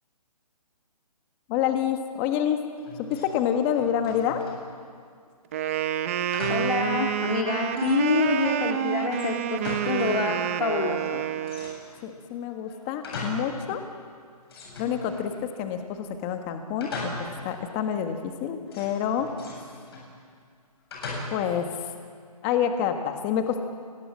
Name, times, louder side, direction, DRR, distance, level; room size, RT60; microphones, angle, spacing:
voice 1, 1.5-2.6 3.0-4.4 12.0-13.8 14.8-19.3 21.3-21.7 22.4-23.6, left 9 dB, 15° left, 6 dB, 1.5 m, -27 dB
sound 1, 2.8-3.3 3.6-4.7 6.3-6.8 7.2-7.3 7.7-8.4 9.1-10.2 10.4-10.5 11.4-12.1 12.6-13.6 13.9-14.0 14.5-15.5 16.8-17.5 18.7-20.1 20.9-21.6, left 2 dB, 40° left, 7.8 m, -38 dB
Wind instrument woodwind instrument, 5.5-11.8, right 10 dB, 20° right, 0.7 m, -28 dB
voice 2, 6.5-11.2, left 4 dB, 70° left, 0 dB, 2.7 m, -27 dB
29.0 x 20.5 x 7.5 m, 2.1 s
hypercardioid pair, 165°, 20 cm